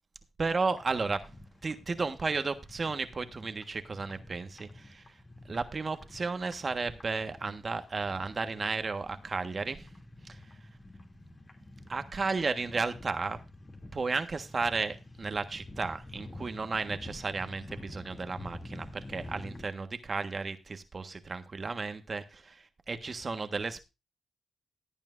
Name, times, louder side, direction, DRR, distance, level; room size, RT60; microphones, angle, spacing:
voice 1, 0.4-1.2 1.6-5.2 5.4-9.9 10.2-10.4 11.9-13.4 13.9-23.8, right 4 dB, 45° right, 1.4 m, -33 dB
sound 1, 0.7-19.6, left 2 dB, 35° left, 2.6 m, -49 dB
16.5 x 9.0 x 2.6 m
supercardioid pair, 55°, 0 cm